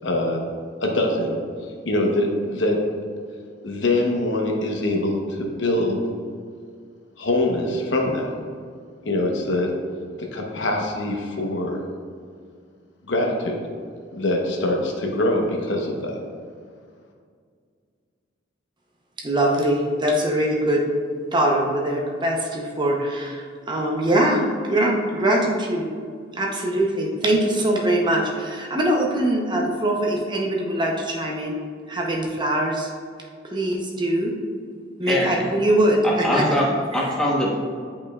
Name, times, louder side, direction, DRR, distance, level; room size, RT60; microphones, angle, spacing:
voice 1, 0.0-0.4 0.8-1.4 1.8-2.8 3.6-6.0 7.2-8.3 9.0-9.7 10.3-11.8 13.1-13.6 14.1-16.2, left 1 dB, 75° left, 0 dB, 1.0 m, -23 dB
voice 2, 19.2-20.8 21.3-25.9 26.3-31.6 31.9-32.9 33.5-34.3 35.0-36.6, right 1 dB, 25° right, 0 dB, 0.7 m, -22 dB
voice 3, 35.0-35.5 36.0-36.7 36.9-37.6, equal, 5° left, -4 dB, 1.0 m, -22 dB
8.7 x 5.3 x 2.3 m, 2.1 s
head